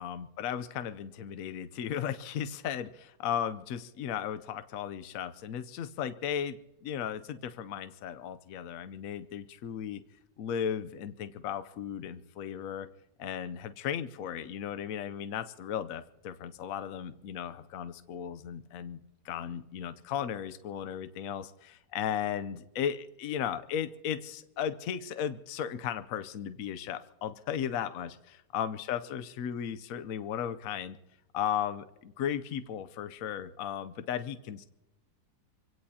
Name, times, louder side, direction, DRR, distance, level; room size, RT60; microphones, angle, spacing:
voice 1, 0.0-10.0 10.4-12.9 13.2-31.0 31.3-34.7, left 9 dB, 70° left, 11 dB, 0.8 m, -36 dB
26.0 x 17.0 x 2.8 m, 0.95 s
omnidirectional pair, 2.1 m